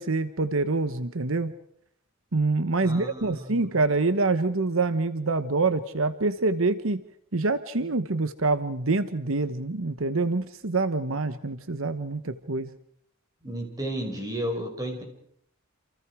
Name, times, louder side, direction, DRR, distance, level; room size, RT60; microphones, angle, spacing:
voice 1, 0.0-1.5 2.3-7.0 7.3-12.7, right 3 dB, 75° right, 11 dB, 1.1 m, -26 dB
voice 2, 2.8-3.7 13.4-15.0, right 1 dB, 20° right, 3 dB, 5.7 m, -33 dB
28.5 x 28.0 x 4.9 m, 0.69 s
head